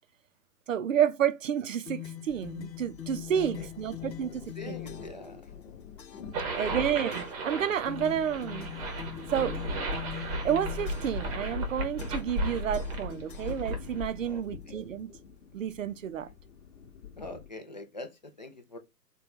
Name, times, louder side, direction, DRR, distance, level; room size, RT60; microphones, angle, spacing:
voice 1, 0.7-4.8 6.5-8.7 9.3-9.6 10.4-15.1 15.5-16.3, right 9 dB, 55° right, 0.5 m, -30 dB
sound 1, 1.9-5.3 6.0-6.4 7.1-7.5 7.9-11.3 12.0-12.4 12.7-14.1, left 11 dB, 85° left, 0.7 m, -43 dB
sound 2, 2.3-17.5, left 7 dB, 50° left, 1.0 m, -49 dB
voice 2, 4.6-5.4 6.3-6.8 14.2-14.4 17.2-18.8, left 2 dB, 30° left, 0.4 m, -43 dB
sound 3, 6.3-14.4, right 1 dB, 20° right, 0.8 m, -35 dB
3.9 x 2.2 x 4.1 m
figure-of-eight pair, 125°, 50 cm